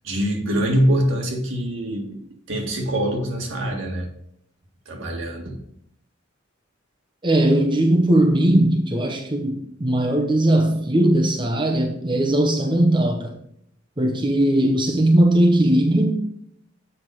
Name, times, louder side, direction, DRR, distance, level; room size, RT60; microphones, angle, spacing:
voice 1, 0.0-4.1 4.9-5.6, equal, 75° right, 1.8 m, -24 dB
voice 2, 7.2-13.3 14.0-16.2, right 1 dB, 25° right, 0.8 m, -19 dB
7.6 x 5.7 x 4.7 m
head